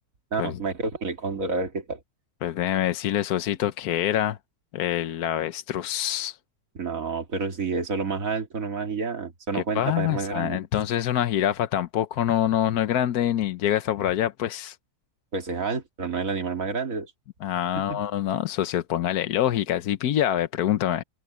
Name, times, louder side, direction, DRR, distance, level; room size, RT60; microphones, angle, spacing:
voice 1, 0.3-2.0 6.8-10.6 15.3-17.1 17.8-18.0, right 4 dB, 60° right, 2.4 m, -29 dB
voice 2, 2.4-4.4 4.7-6.4 9.5-14.8 17.4-21.0, left 11 dB, 80° left, 1.3 m, -25 dB
omnidirectional pair, 1.6 m